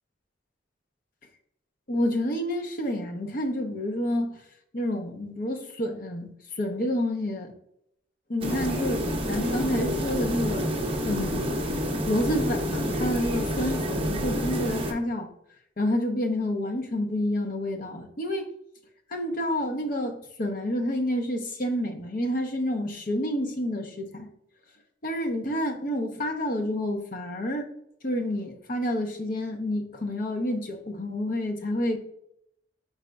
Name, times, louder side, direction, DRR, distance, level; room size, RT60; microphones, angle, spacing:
voice 1, 1.9-4.3 4.7-6.3 6.6-7.5 8.3-10.7 11.0-11.6 12.1-15.3 15.8-18.5 19.1-24.3 25.0-27.7 28.0-32.0, left 1 dB, 45° left, 2 dB, 0.7 m, -29 dB
sound 1, 8.4-14.9, equal, 30° right, 0.6 m, -28 dB
5.0 x 4.8 x 2.2 m, 0.74 s
head